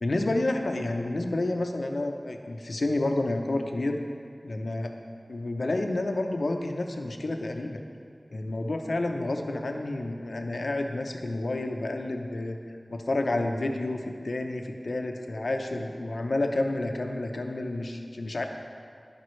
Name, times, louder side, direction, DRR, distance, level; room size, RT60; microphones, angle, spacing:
voice 1, 0.0-4.0 4.4-5.0 5.3-7.8 8.3-12.6 12.9-18.4, left 2 dB, 80° left, 4 dB, 0.7 m, -30 dB
15.5 x 5.3 x 3.2 m, 2.3 s
wide cardioid pair, 45°, 0 cm